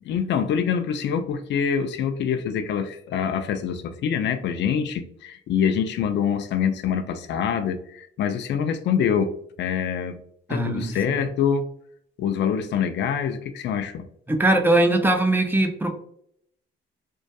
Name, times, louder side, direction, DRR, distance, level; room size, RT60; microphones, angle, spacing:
voice 1, 0.0-9.3 9.6-10.2 10.5-11.7 12.2-14.0, left 7 dB, 65° left, 9 dB, 0.4 m, -25 dB
voice 2, 10.5-11.2 14.3-15.9, right 2 dB, 10° right, 4 dB, 0.4 m, -21 dB
2.5 x 2.2 x 2.2 m, 0.68 s
cardioid pair, 90°, 20 cm